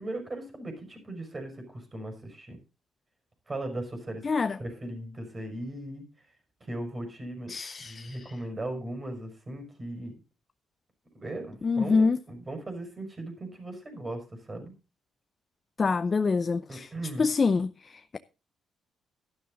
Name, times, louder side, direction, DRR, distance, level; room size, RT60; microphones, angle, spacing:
voice 1, 0.0-2.6 3.5-4.2 4.6-6.0 6.6-10.1 11.1-14.7 16.7-17.3, right 1 dB, 30° right, 5.7 m, -38 dB
voice 2, 4.2-4.6 7.5-8.3 11.6-12.2 15.8-16.9 17.2-18.2, left 4 dB, 35° left, 0.6 m, -26 dB
12.0 x 11.5 x 3.9 m
cardioid pair, 90°, 0 cm